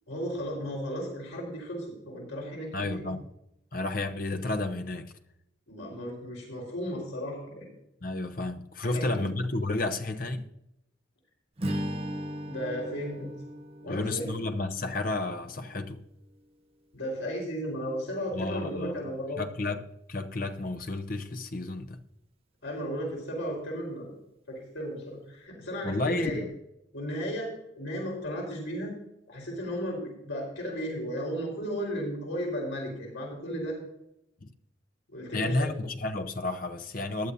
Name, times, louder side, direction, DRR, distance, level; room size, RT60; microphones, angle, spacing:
voice 1, 0.1-3.1 5.7-7.7 8.8-9.3 12.5-13.3 13.8-14.2 16.9-19.4 22.6-24.1 24.5-26.4 26.9-28.9 29.3-33.8 35.1-35.7, equal, 80° left, 4.4 m, -35 dB
voice 2, 2.7-3.2 3.7-5.1 8.0-10.5 13.9-16.0 18.3-19.0 19.4-22.0 25.8-26.5 34.4-34.5 35.3-37.3, left 2 dB, 45° left, 0.8 m, -31 dB
Strum, 11.6-16.0, equal, 30° right, 0.9 m, -38 dB
15.0 x 11.0 x 2.7 m
head